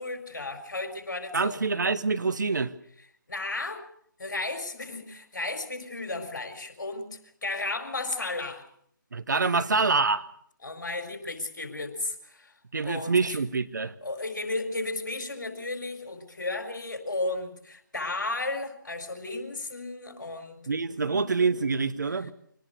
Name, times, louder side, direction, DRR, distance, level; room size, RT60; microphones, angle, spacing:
voice 1, 0.0-1.7 3.3-3.8 4.2-8.6 9.5-10.0 10.6-12.5 12.8-13.4 14.0-20.6 20.9-21.9, left 2 dB, 60° left, 6 dB, 4.8 m, -34 dB
voice 2, 1.3-2.7 9.1-10.3 12.7-13.9 20.7-22.3, right 4 dB, 60° right, 13 dB, 1.1 m, -26 dB
24.5 x 18.5 x 6.6 m, 0.68 s
figure-of-eight pair, 145°, 11 cm